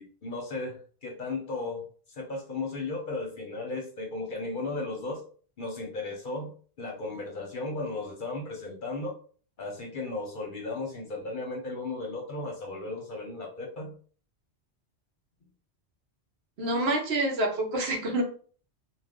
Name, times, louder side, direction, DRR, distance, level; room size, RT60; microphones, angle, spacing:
voice 1, 0.0-5.2 5.6-9.1 9.6-13.9, left 2 dB, 55° left, 0 dB, 0.8 m, -35 dB
voice 2, 16.6-18.2, right 2 dB, 65° right, 1 dB, 1.0 m, -27 dB
2.4 x 2.3 x 3.5 m, 0.43 s
omnidirectional pair, 1.2 m